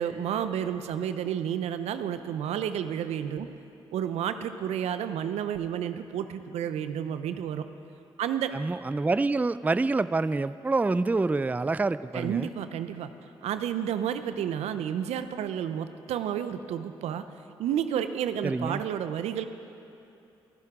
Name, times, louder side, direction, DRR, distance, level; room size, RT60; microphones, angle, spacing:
voice 1, 0.0-3.5 3.9-7.6 8.2-8.5 12.1-13.1 13.4-17.3 17.6-19.5, right 9 dB, 75° right, 11 dB, 0.6 m, -31 dB
voice 2, 8.5-12.5 18.4-18.8, right 3 dB, 15° right, 16 dB, 0.3 m, -27 dB
22.0 x 12.0 x 3.7 m, 2.7 s
supercardioid pair, 50°, 11 cm